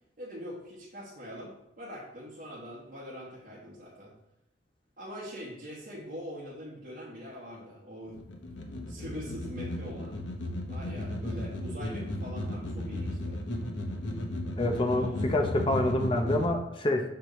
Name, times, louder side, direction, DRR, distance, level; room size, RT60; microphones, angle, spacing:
voice 1, 0.2-4.1 5.0-8.2 8.9-10.2 10.7-13.4 14.9-15.9, equal, 50° right, -8 dB, 1.4 m, -43 dB
sound 1, 8.1-16.5, left 1 dB, 90° left, 0.9 m, -35 dB
voice 2, 14.6-17.0, left 1 dB, 30° left, 4 dB, 0.7 m, -27 dB
6.7 x 4.7 x 3.1 m, 0.83 s
head